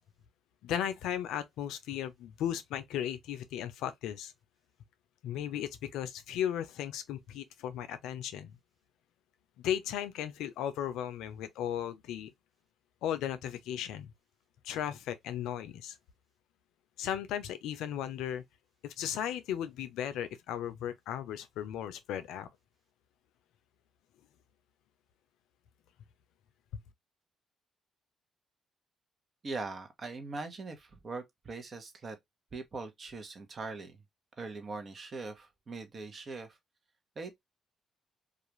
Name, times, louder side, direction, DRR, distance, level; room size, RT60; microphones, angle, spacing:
voice 1, 0.6-4.3 5.2-8.6 9.6-12.3 13.0-14.1 14.6-15.9 17.0-18.4 18.8-22.5, left 10 dB, 85° left, 0.4 m, -36 dB
voice 2, 29.4-32.2 32.5-34.0 34.4-36.6 37.2-37.4, right 3 dB, 45° right, 0.9 m, -41 dB
2.4 x 2.4 x 3.0 m
supercardioid pair, 65°, 0 cm